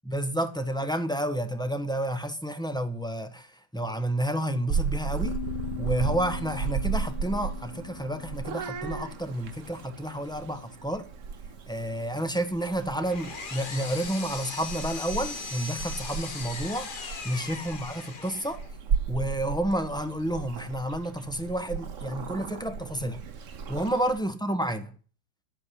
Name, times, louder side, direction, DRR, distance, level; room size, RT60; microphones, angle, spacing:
voice 1, 0.1-5.4 5.8-11.1 11.7-16.9 17.2-18.6 19.1-23.2 23.7-24.9, right 1 dB, 5° left, 1.0 m, -30 dB
Purr / Meow, 4.7-24.2, right 6 dB, 50° right, 1.1 m, -35 dB
sound 1, 5.2-10.4, left 16 dB, 60° left, 1.7 m, -42 dB
Power tool, 12.7-18.7, left 4 dB, 35° left, 1.0 m, -39 dB
12.0 x 8.4 x 10.0 m
omnidirectional pair, 1.9 m